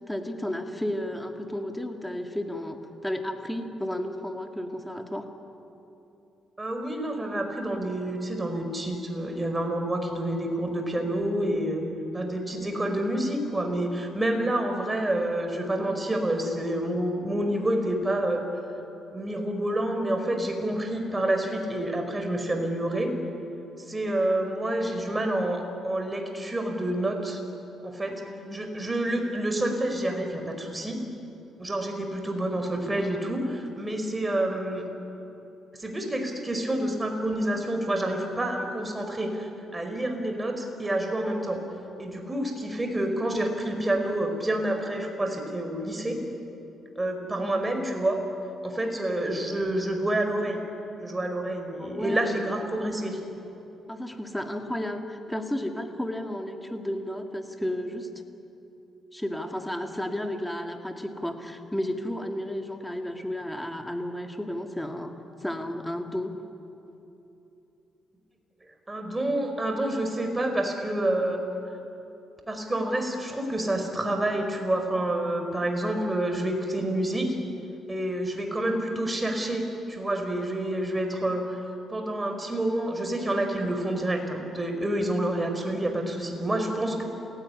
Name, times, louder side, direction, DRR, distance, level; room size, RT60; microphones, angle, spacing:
voice 1, 0.1-2.8 3.0-5.3 28.2-28.6 47.4-47.5 51.8-52.4 53.9-58.1 59.1-65.1 65.4-66.4, left 1 dB, 5° left, 4 dB, 2.5 m, -33 dB
voice 2, 6.6-11.8 12.1-18.4 19.1-23.1 23.9-27.4 27.8-28.2 28.5-31.0 31.6-34.8 35.8-41.6 42.0-46.2 46.9-48.2 48.6-50.6 51.0-53.2 68.9-71.4 72.5-77.4 77.9-81.6 81.9-87.0, right 1 dB, 15° right, 4 dB, 4.7 m, -28 dB
28.5 x 16.5 x 9.9 m, 3.0 s
cardioid pair, 90°, 0 cm